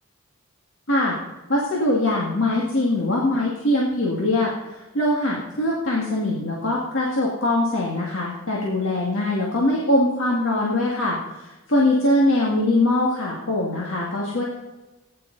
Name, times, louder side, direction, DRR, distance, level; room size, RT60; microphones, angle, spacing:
voice 1, 1.5-14.5, left 1 dB, 65° left, -3 dB, 2.0 m, -22 dB
16.0 x 9.9 x 4.0 m, 1.1 s
head